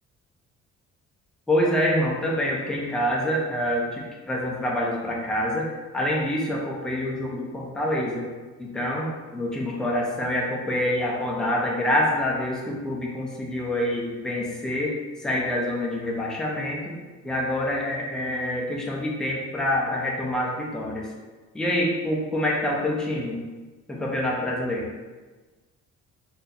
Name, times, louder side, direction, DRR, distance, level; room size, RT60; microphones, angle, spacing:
voice 1, 1.5-5.7 5.9-8.3 8.6-14.9 15.2-16.9 17.2-21.1 21.5-23.4 23.9-24.9, left 1 dB, ahead, -4 dB, 0.4 m, -26 dB
3.9 x 2.6 x 2.3 m, 1.3 s
cardioid pair, 175°, 29 cm